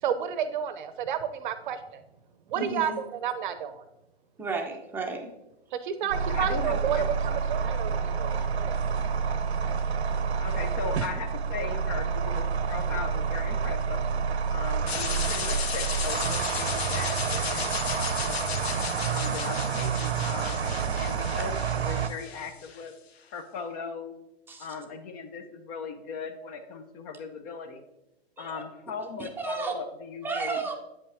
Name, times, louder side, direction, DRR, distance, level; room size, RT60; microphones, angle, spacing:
voice 1, 0.0-2.0 2.5-3.8 5.7-8.4, right 8 dB, 50° right, 11 dB, 0.7 m, -31 dB
voice 2, 2.5-3.0 4.4-5.3 17.7-17.8 24.5-24.7 28.4-28.6 29.2-29.7 30.2-30.7, right 4 dB, 5° right, 2 dB, 0.7 m, -33 dB
voice 3, 6.0-7.0 10.4-14.0 14.5-18.6 19.1-22.9 23.3-24.1 24.6-27.8 28.4-30.6, left 5 dB, 35° left, 8 dB, 0.8 m, -38 dB
sound 1, 6.1-22.1, right 6 dB, 85° right, 0.7 m, -28 dB
sound 2, 14.9-22.9, left 7 dB, 75° left, 0.9 m, -35 dB
8.3 x 5.3 x 3.5 m, 0.92 s
hypercardioid pair, 130°, 32 cm